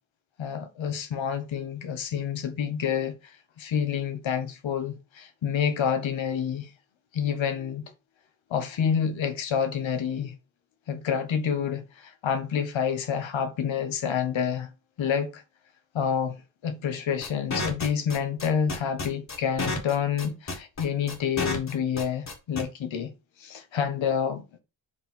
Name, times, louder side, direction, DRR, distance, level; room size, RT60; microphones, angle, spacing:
voice 1, 0.4-6.7 7.1-7.9 8.5-10.3 10.9-14.7 15.0-15.4 15.9-16.4 16.6-23.1 23.4-24.4, left 7 dB, 75° left, 1.4 m, -28 dB
sound 1, 17.2-22.6, left 2 dB, 35° left, 1.9 m, -31 dB
5.2 x 4.6 x 5.4 m
wide cardioid pair, 175°, 46 cm